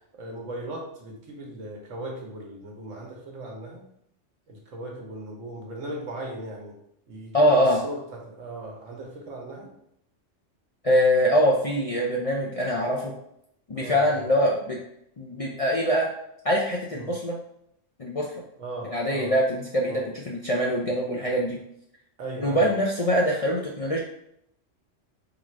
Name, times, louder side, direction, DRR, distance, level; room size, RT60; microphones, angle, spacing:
voice 1, 0.1-3.8 4.5-6.8 7.1-9.7 13.7-14.3 16.9-17.1 18.6-19.3 19.8-20.0 22.2-22.7, right 1 dB, 85° right, 0 dB, 1.4 m, -38 dB
voice 2, 7.3-7.8 10.8-13.1 13.7-14.8 15.2-16.1 16.4-17.4 18.0-18.4 18.9-21.6 22.4-24.0, equal, 45° left, -3 dB, 0.4 m, -23 dB
3.9 x 2.5 x 4.4 m, 0.74 s
omnidirectional pair, 1.3 m